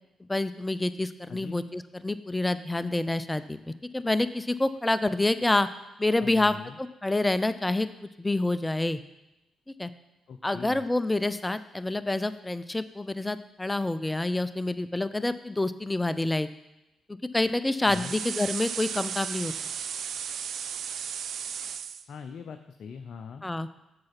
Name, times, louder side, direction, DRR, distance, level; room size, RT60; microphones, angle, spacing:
voice 1, 0.3-5.7 6.0-7.9 8.2-9.0 9.8-9.9 10.4-16.5 17.3-19.5 23.4-23.7, left 2 dB, 15° left, 13 dB, 0.6 m, -27 dB
voice 2, 6.2-6.8 10.3-10.8 17.9-18.1 22.1-23.4, left 6 dB, 60° left, 7 dB, 0.5 m, -41 dB
sound 1, 17.9-22.0, right 8 dB, 65° right, 0.4 m, -35 dB
7.6 x 5.9 x 5.8 m, 0.96 s
hypercardioid pair, 45°, 0 cm